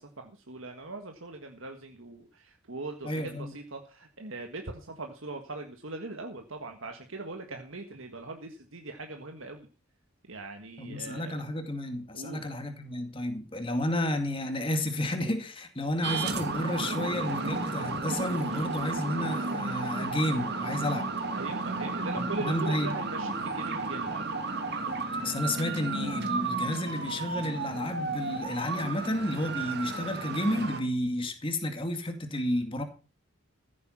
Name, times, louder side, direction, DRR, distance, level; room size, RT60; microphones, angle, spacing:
voice 1, 0.0-9.7 10.3-11.4 12.1-12.4 18.5-18.7 21.3-24.4, right 2 dB, 65° right, 1.7 m, -41 dB
voice 2, 3.0-3.6 10.8-21.1 22.2-22.9 25.2-32.8, left 1 dB, 25° left, 2.2 m, -31 dB
sound 1, 16.0-30.8, right 3 dB, 50° right, 2.0 m, -33 dB
15.0 x 8.2 x 5.9 m
head